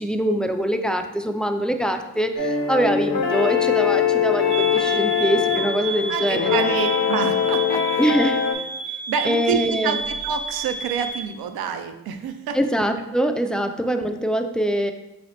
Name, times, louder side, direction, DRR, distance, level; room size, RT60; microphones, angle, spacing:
voice 1, 0.0-2.3 2.7-4.4 4.9-6.5 8.0-8.3 9.2-10.0 12.5-14.9, right 1 dB, ahead, 6 dB, 0.3 m, -23 dB
sound 1, 2.4-8.5, left 8 dB, 75° left, 0.9 m, -22 dB
sound 2, 4.5-11.3, right 5 dB, 55° right, 1.0 m, -31 dB
voice 2, 6.1-8.1 9.1-12.6, right 6 dB, 80° right, 7 dB, 0.5 m, -27 dB
4.7 x 3.1 x 3.1 m, 0.93 s
cardioid pair, 65°, 36 cm